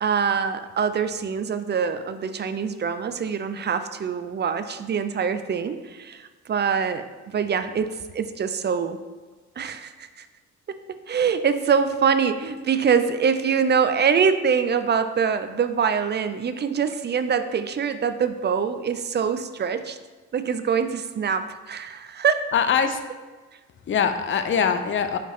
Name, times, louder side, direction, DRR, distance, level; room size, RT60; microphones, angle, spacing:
voice 1, 0.0-7.0 7.3-9.0 9.6-10.3 10.7-10.8 11.1-20.0 20.3-22.5, right 6 dB, 35° right, 10 dB, 0.4 m, -24 dB
voice 2, 22.5-23.0 23.9-25.2, left 7 dB, 40° left, 9 dB, 0.6 m, -22 dB
5.8 x 5.1 x 3.5 m, 1.3 s
cardioid pair, 90°, 30 cm